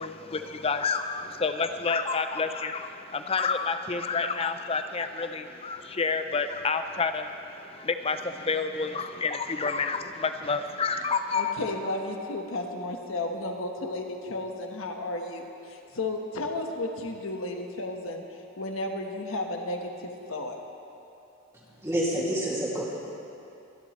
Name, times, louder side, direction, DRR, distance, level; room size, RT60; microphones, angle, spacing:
voice 1, 0.0-11.6, left 4 dB, 25° left, 8 dB, 0.5 m, -29 dB
voice 2, 11.3-18.2 18.6-20.6, left 2 dB, 75° left, 3 dB, 1.3 m, -33 dB
voice 3, 21.8-22.8, right 1 dB, 15° right, -6 dB, 2.3 m, -27 dB
24.5 x 11.0 x 3.2 m, 2.8 s
head